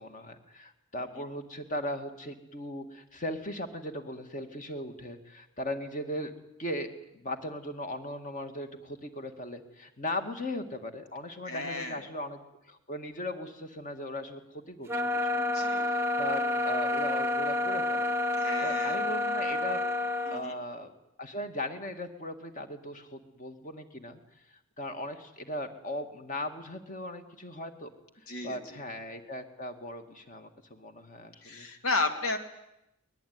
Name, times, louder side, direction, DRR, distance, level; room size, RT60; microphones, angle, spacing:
voice 1, 0.0-6.3 6.6-12.4 12.7-15.0 15.3-18.1 18.6-19.8 20.3-20.9 21.2-24.2 24.5-27.9 28.4-31.7, left 1 dB, 35° left, 6 dB, 2.0 m, -38 dB
voice 2, 11.5-12.1 15.4-15.9 18.4-19.0 20.2-20.6 28.3-28.8 31.4-32.4, left 3 dB, 75° left, 6 dB, 2.7 m, -33 dB
sound 1, 14.9-20.4, left 2 dB, 10° right, 0.9 m, -29 dB
22.5 x 20.0 x 9.6 m, 0.86 s
head